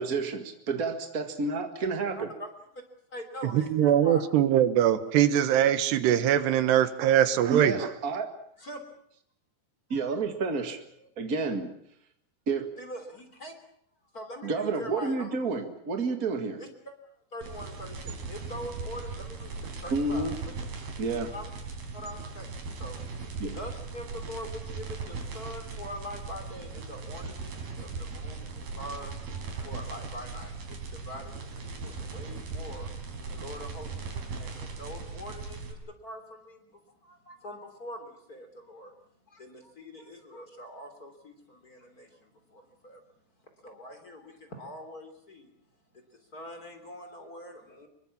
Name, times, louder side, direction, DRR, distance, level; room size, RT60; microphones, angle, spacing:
voice 1, 0.0-2.3 7.5-8.3 9.9-10.8 11.2-11.7 12.5-12.7 14.4-16.6 19.9-20.4 21.0-21.3 23.4-23.6, right 3 dB, 50° right, 6 dB, 1.0 m, -30 dB
voice 2, 2.2-2.5 2.7-2.8 3.1-4.2 8.6-8.8 9.9-10.1 10.6-10.7 11.0-11.1 12.8-13.5 14.1-15.4 16.6-16.9 17.3-20.5 21.3-21.5 21.9-22.5 22.8-23.0 23.5-32.9 33.3-38.9 39.3-43.2 43.6-45.5 46.3-47.9, left 1 dB, 25° left, 6 dB, 3.2 m, -44 dB
voice 3, 3.5-7.9, right 10 dB, 85° right, 12 dB, 3.5 m, -22 dB
sound 1, 17.4-35.7, right 4 dB, 70° right, 5.9 m, -39 dB
25.5 x 23.0 x 7.3 m, 0.69 s
omnidirectional pair, 4.7 m